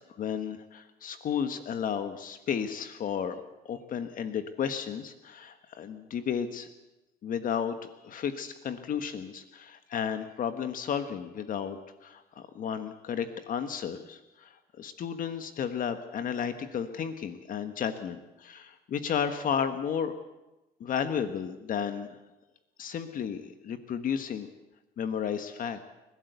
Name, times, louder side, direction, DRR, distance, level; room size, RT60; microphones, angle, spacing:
voice 1, 0.2-6.7 7.2-20.2 20.8-22.2 22.8-24.5 25.0-25.8, left 7 dB, 55° left, 9 dB, 1.4 m, -33 dB
29.0 x 12.5 x 8.2 m, 1.0 s
cardioid pair, 110°, 17 cm